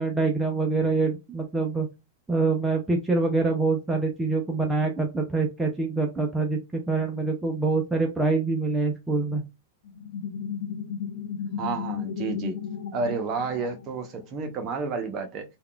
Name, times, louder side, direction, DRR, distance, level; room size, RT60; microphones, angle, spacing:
voice 1, 0.0-1.9 2.3-6.6 6.9-9.4, right 3 dB, 5° right, 1 dB, 0.5 m, -25 dB
sound 1, 9.8-14.3, left 7 dB, 70° left, 0.4 m, -34 dB
voice 2, 11.6-12.6 12.9-15.4, right 4 dB, 35° right, 5 dB, 0.8 m, -30 dB
3.5 x 2.3 x 2.2 m, 0.24 s
hypercardioid pair, 130°, 0 cm